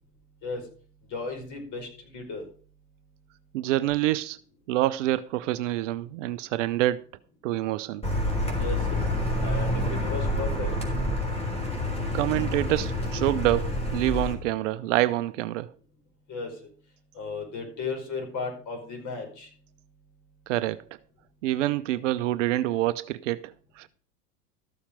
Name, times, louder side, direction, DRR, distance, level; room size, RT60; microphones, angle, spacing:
voice 1, 1.1-2.4 8.5-8.9 9.4-10.7 16.3-16.5 17.1-19.5, left 4 dB, 40° left, 5.0 m, -35 dB
voice 2, 3.5-4.4 4.7-7.0 7.4-8.0 12.1-15.7 20.5-20.8 21.4-23.9, right 15 dB, 50° right, 0.6 m, -26 dB
Car, 8.0-14.3, left 1 dB, 15° left, 3.6 m, -28 dB
13.5 x 7.1 x 5.2 m
figure-of-eight pair, 90°, 48 cm